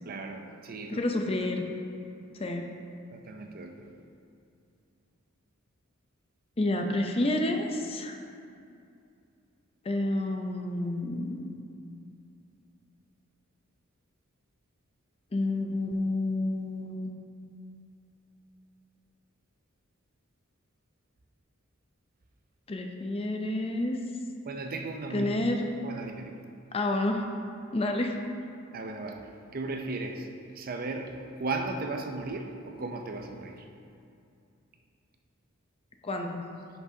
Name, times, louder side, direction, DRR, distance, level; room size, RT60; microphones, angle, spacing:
voice 1, 0.1-1.0 1.4-1.5 3.1-3.9 24.4-25.3 25.8-26.3 28.7-30.3 30.5-33.6, right 3 dB, 45° right, 4 dB, 0.5 m, -36 dB
voice 2, 0.9-1.7 2.3-2.7 6.6-8.2 9.8-11.5 15.3-17.1 22.7-24.0 25.1-25.7 26.7-27.3 27.7-28.2 36.0-36.5, left 2 dB, 25° left, 4 dB, 0.5 m, -29 dB
10.0 x 6.1 x 2.7 m, 2.5 s
head